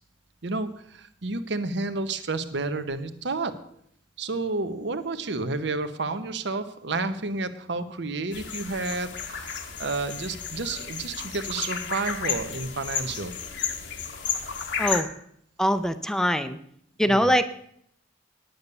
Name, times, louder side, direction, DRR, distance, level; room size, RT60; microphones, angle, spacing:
voice 1, 0.4-3.6 4.2-13.3 17.0-17.3, right 3 dB, 65° right, 10 dB, 1.0 m, -30 dB
sound 1, 8.3-15.0, left 6 dB, 70° left, 1.3 m, -32 dB
voice 2, 15.6-16.6 17.0-17.6, equal, 5° left, 12 dB, 0.6 m, -23 dB
10.5 x 8.5 x 6.7 m, 0.69 s
head